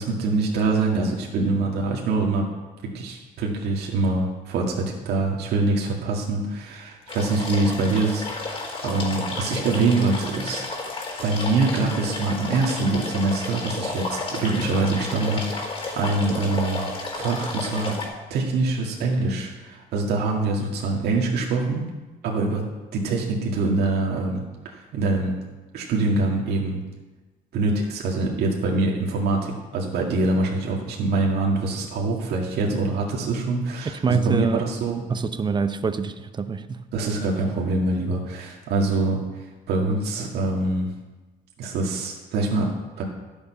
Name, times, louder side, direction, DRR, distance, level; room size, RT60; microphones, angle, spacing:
voice 1, 0.0-2.5 2.8-10.7 11.2-16.9 17.1-18.0 18.3-21.9 22.2-22.7 22.9-25.4 25.7-26.8 27.5-35.0 36.9-40.9 41.6-43.0, right 3 dB, 70° right, 2.0 m, -24 dB
sound 1, 7.1-18.1, left 3 dB, 30° left, 4.2 m, -32 dB
voice 2, 34.0-34.6 35.1-36.6, right 5 dB, 25° right, 0.7 m, -25 dB
12.0 x 7.1 x 5.6 m
cardioid pair, 110°, 17 cm